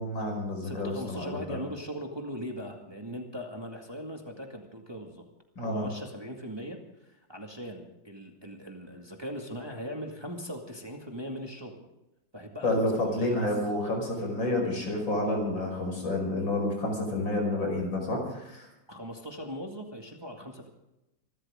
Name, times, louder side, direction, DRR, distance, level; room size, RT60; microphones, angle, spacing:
voice 1, 0.0-1.6 5.6-5.9 12.6-18.7, left 1 dB, 80° left, 1 dB, 6.2 m, -29 dB
voice 2, 0.6-5.2 5.6-6.8 7.0-11.9 12.3-13.5 18.9-20.7, equal, 15° right, 2 dB, 1.9 m, -39 dB
25.5 x 13.0 x 3.7 m, 0.91 s
omnidirectional pair, 2.0 m